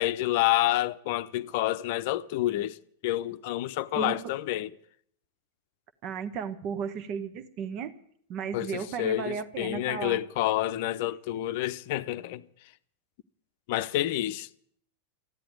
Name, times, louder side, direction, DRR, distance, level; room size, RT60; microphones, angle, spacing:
voice 1, 0.0-2.8 3.0-4.7 8.5-12.4 13.7-14.5, left 14 dB, 50° left, 0.7 m, -28 dB
voice 2, 3.9-4.3 6.0-7.9 8.3-10.2, right 7 dB, 40° right, 1.1 m, -34 dB
14.5 x 10.5 x 9.3 m
figure-of-eight pair, 90°, 0 cm